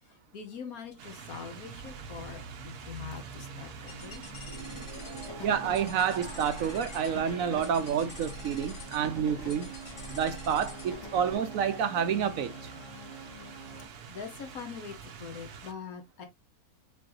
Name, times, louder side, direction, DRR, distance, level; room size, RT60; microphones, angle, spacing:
voice 1, 0.0-4.2 14.1-16.3, left 6 dB, 70° left, 1.6 m, -43 dB
sound 1, 1.0-15.7, right 7 dB, 90° right, 1.4 m, -48 dB
sound 2, 1.7-13.9, right 2 dB, 20° left, 1.0 m, -46 dB
sound 3, 3.9-11.4, left 1 dB, 50° left, 1.8 m, -45 dB
voice 2, 5.4-9.7 10.1-12.7, right 8 dB, 70° right, 0.9 m, -29 dB
5.1 x 3.5 x 2.9 m
omnidirectional pair, 1.6 m